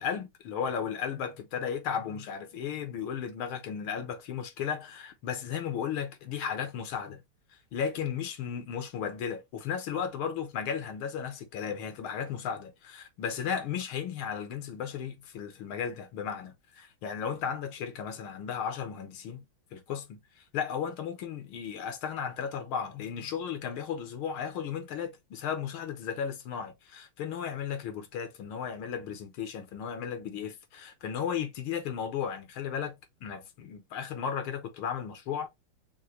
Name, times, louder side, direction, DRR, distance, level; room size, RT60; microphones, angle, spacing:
voice 1, 0.0-7.2 7.7-19.5 19.7-20.2 20.5-33.0 33.2-35.5, left 7 dB, 75° left, 1.7 m, -35 dB
6.5 x 2.2 x 3.0 m
omnidirectional pair, 2.4 m